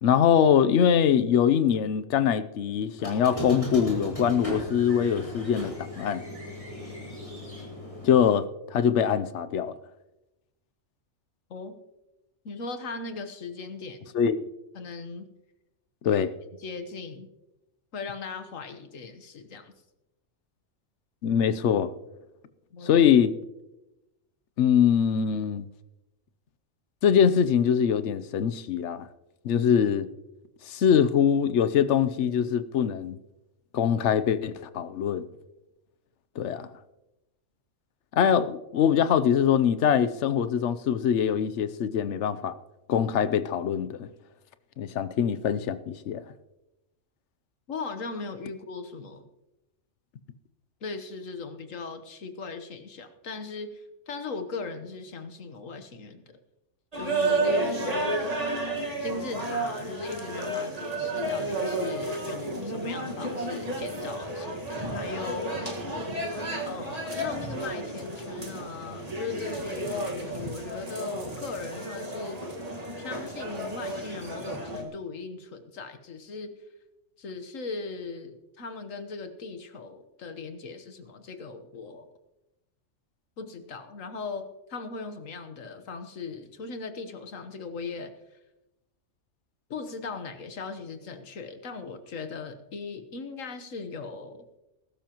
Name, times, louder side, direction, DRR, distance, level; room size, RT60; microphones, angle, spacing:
voice 1, 0.0-6.2 8.0-9.8 14.1-14.4 16.0-16.3 21.2-21.9 22.8-23.3 24.6-25.7 27.0-29.1 29.4-30.1 30.7-33.2 33.7-35.3 36.4-36.7 38.1-42.5 42.9-44.1 44.8-46.2, left 8 dB, 70° left, 1.0 m, -23 dB
Squeak, 3.0-8.3, equal, 25° left, 4.3 m, -36 dB
voice 2, 12.4-14.1 14.7-15.3 16.1-16.2 16.6-17.3 17.9-19.7 22.7-23.0 47.7-49.3 50.8-56.4 56.9-58.4 59.0-65.5 66.7-72.4 73.0-76.5 77.2-82.1 83.4-88.1 89.7-94.4, left 4 dB, 90° left, 1.6 m, -38 dB
sound 1, 56.9-74.8, right 2 dB, 30° right, 1.8 m, -32 dB
20.5 x 12.5 x 3.0 m
omnidirectional pair, 1.3 m